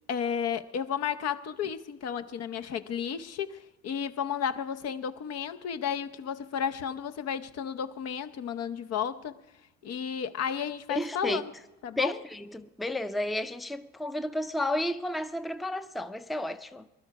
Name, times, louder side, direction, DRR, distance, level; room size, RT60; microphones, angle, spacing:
voice 1, 0.1-9.4 9.8-11.5 11.8-12.2, left 8 dB, 60° left, 0.7 m, -33 dB
voice 2, 10.9-11.4 12.0-16.9, left 1 dB, ahead, 0.5 m, -32 dB
20.0 x 11.5 x 4.7 m
supercardioid pair, 75°, 29 cm